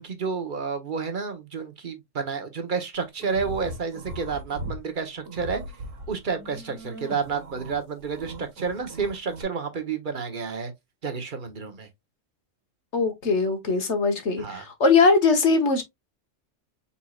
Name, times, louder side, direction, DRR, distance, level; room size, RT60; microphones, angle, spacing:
voice 1, 0.0-5.6 6.1-10.7 11.0-11.9 14.4-14.6, right 5 dB, 45° right, 1.1 m, -30 dB
sound 1, 3.2-4.8 5.2-9.4, right 1 dB, 85° right, 1.6 m, -39 dB
voice 2, 12.9-15.8, left 4 dB, 65° left, 1.4 m, -21 dB
4.5 x 4.2 x 2.3 m
omnidirectional pair, 1.3 m